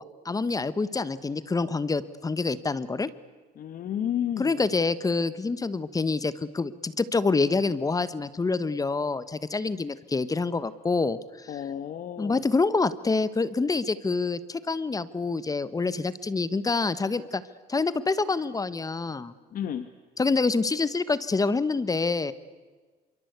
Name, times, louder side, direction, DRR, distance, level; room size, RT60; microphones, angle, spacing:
voice 1, 0.0-3.1 4.4-11.5 12.2-17.4 17.7-19.3 20.2-22.3, left 3 dB, 20° left, 16 dB, 1.3 m, -27 dB
voice 2, 3.6-4.6 11.5-12.4 19.5-19.9, left 10 dB, 55° left, 10 dB, 1.5 m, -32 dB
27.0 x 24.0 x 8.2 m, 1.4 s
cardioid pair, 110°, 17 cm